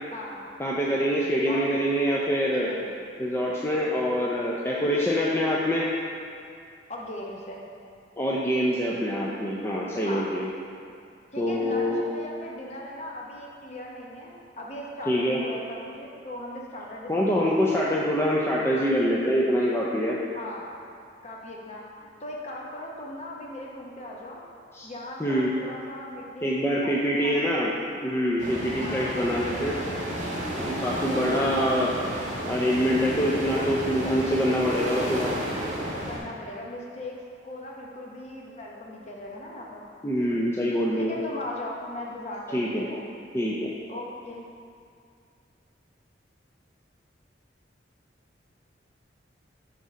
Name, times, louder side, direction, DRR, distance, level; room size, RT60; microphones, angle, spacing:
voice 1, 0.6-2.7 3.2-5.9 8.2-10.5 11.4-12.0 15.1-15.4 17.1-20.2 24.7-24.9 25.2-25.5 26.4-27.7 28.0-29.8 30.5-31.9 32.4-35.4 40.0-41.1 42.5-42.8 43.3-43.7, equal, 15° left, -5 dB, 0.4 m, -25 dB
voice 2, 1.5-1.9 2.5-2.9 6.9-7.6 10.0-10.3 11.3-17.8 20.3-20.7 21.2-24.4 24.8-27.8 28.8-29.3 31.1-32.1 33.1-33.7 36.1-39.8 40.3-40.5 41.0-43.0 43.9-44.4, left 1 dB, 35° left, -2 dB, 0.8 m, -39 dB
sound 1, 28.4-36.2, right 1 dB, 40° right, 1.3 m, -32 dB
6.2 x 4.0 x 5.0 m, 2.4 s
head